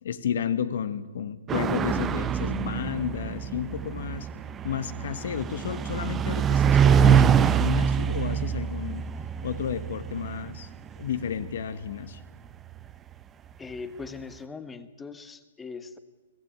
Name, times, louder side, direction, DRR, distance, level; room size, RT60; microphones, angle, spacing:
voice 1, 0.0-4.3 4.6-9.1 9.4-10.7 11.0-12.2, left 8 dB, 65° left, 13 dB, 1.3 m, -32 dB
sound 1, 1.5-12.5, right 8 dB, 20° right, 0.7 m, -25 dB
voice 2, 13.6-16.0, left 4 dB, 10° left, 11 dB, 1.3 m, -40 dB
22.5 x 15.0 x 8.9 m, 1.3 s
hypercardioid pair, 140°, 0 cm